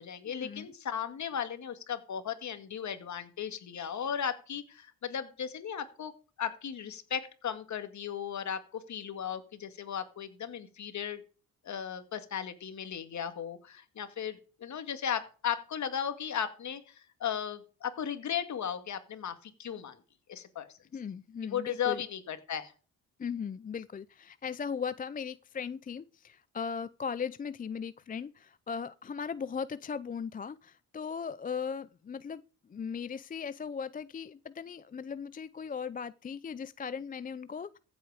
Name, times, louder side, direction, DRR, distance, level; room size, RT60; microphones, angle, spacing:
voice 1, 0.0-6.1 6.4-11.2 11.6-20.0 20.3-20.7 21.4-22.7, left 8 dB, 50° left, 2.1 m, -36 dB
voice 2, 20.9-22.1 23.2-32.4 32.7-37.8, left 6 dB, 25° left, 0.5 m, -38 dB
15.0 x 8.2 x 5.0 m
cardioid pair, 100°, 36 cm